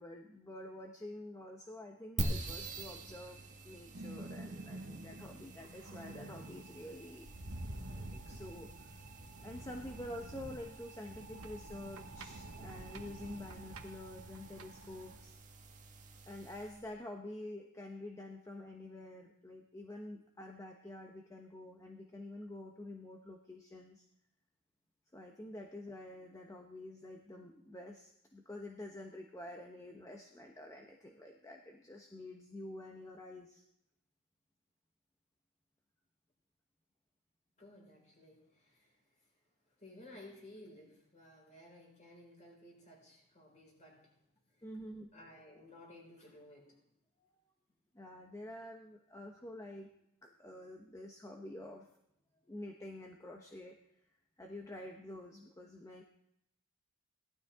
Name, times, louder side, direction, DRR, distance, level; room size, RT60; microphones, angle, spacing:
voice 1, 0.0-7.3 7.9-9.1 9.4-15.3 16.3-24.0 25.1-33.6 44.6-45.1 47.9-49.9 50.2-51.9 52.5-53.8 54.4-56.0, left 1 dB, 15° left, 2 dB, 1.0 m, -48 dB
sound 1, 2.2-16.9, right 2 dB, 35° right, 1.7 m, -46 dB
sound 2, 3.9-15.2, right 1 dB, 65° right, 1.4 m, -49 dB
voice 2, 37.6-39.3 39.7-44.7 45.1-46.9, left 1 dB, 35° left, -2 dB, 5.3 m, -57 dB
17.5 x 12.5 x 3.6 m, 0.78 s
head